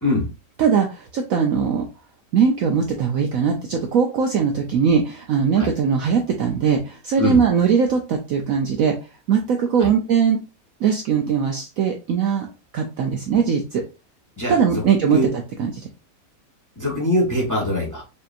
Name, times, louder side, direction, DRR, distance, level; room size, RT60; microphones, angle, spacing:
voice 1, 0.6-1.9 2.3-9.0 9.3-10.4 10.8-12.5 12.7-13.8 14.5-15.8, right 6 dB, 70° right, 3 dB, 0.9 m, -20 dB
voice 2, 14.4-14.8 15.1-15.3 16.8-18.0, left 1 dB, 15° left, -2 dB, 0.9 m, -22 dB
5.1 x 2.8 x 2.5 m, 0.29 s
omnidirectional pair, 1.9 m